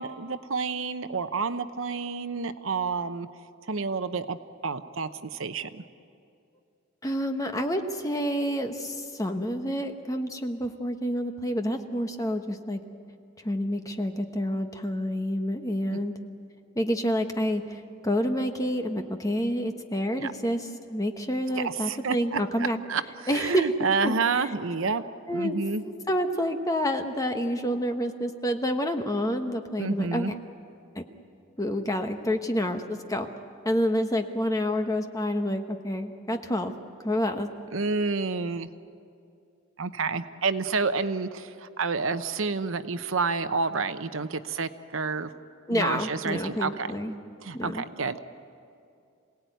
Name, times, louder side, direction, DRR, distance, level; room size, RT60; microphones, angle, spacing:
voice 1, 0.0-3.3 3.7-4.4 4.6-5.8 15.9-16.0 20.2-20.3 21.6-23.0 23.3-25.0 25.3-25.8 29.8-30.3 37.7-38.7 39.8-45.3 45.7-46.9 47.4-48.2, right 4 dB, 65° right, 11 dB, 0.9 m, -29 dB
voice 2, 7.0-12.8 13.4-16.1 16.7-22.8 23.3-24.1 25.3-25.6 25.8-30.4 30.9-31.0 31.6-33.3 33.6-36.7 37.0-37.5 45.7-47.1 47.5-47.8, equal, 15° left, 5 dB, 1.2 m, -28 dB
27.0 x 18.0 x 9.3 m, 2.5 s
head